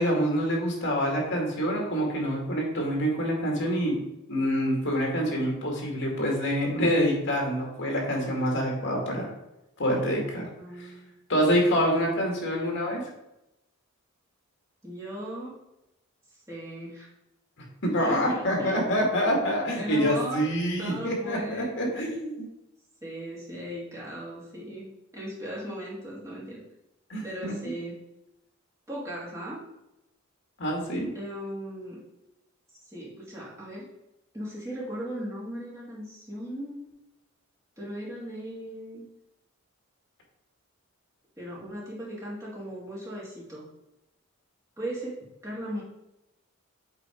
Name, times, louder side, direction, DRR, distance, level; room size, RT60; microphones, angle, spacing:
voice 1, 0.0-4.0 4.3-9.3 9.8-10.5 10.8-10.9 11.3-13.0 17.8-22.5 27.1-27.5 30.6-31.1, equal, 60° left, -1 dB, 2.3 m, -26 dB
voice 2, 10.5-11.2 12.4-12.8 14.8-15.5 16.5-17.1 18.0-18.8 19.8-20.5 20.8-21.7 23.0-26.6 27.2-28.0 28.9-29.6 31.1-32.0 32.9-33.9 34.3-36.8 37.8-39.0 41.4-43.6 44.8-45.8, equal, 15° right, -6 dB, 2.4 m, -37 dB
7.8 x 4.2 x 4.6 m, 0.91 s
head